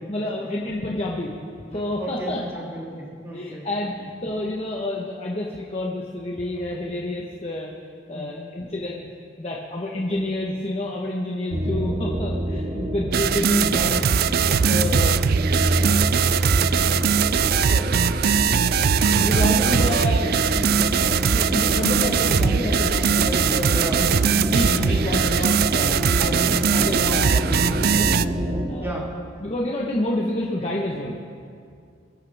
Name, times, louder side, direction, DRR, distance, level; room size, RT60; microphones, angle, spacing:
voice 1, 0.1-1.4 1.7-2.4 3.3-7.7 8.1-9.0 9.4-14.3 14.7-15.3 15.6-16.1 16.7-16.9 17.7-18.2 18.5-18.7 19.1-24.1 24.3-26.4 26.7-28.1 28.7-29.0 29.4-31.2, left 1 dB, 35° left, -3 dB, 1.2 m, -29 dB
voice 2, 2.0-3.7 8.1-8.5 10.1-10.3 23.7-24.1 26.2-26.7 28.8-29.2, right 1 dB, 15° right, -3 dB, 2.8 m, -34 dB
sound 1, 11.5-28.7, equal, 35° right, 2.0 m, -26 dB
sound 2, 13.1-28.3, right 7 dB, 50° right, 0.3 m, -21 dB
23.5 x 13.0 x 3.5 m, 2.3 s
head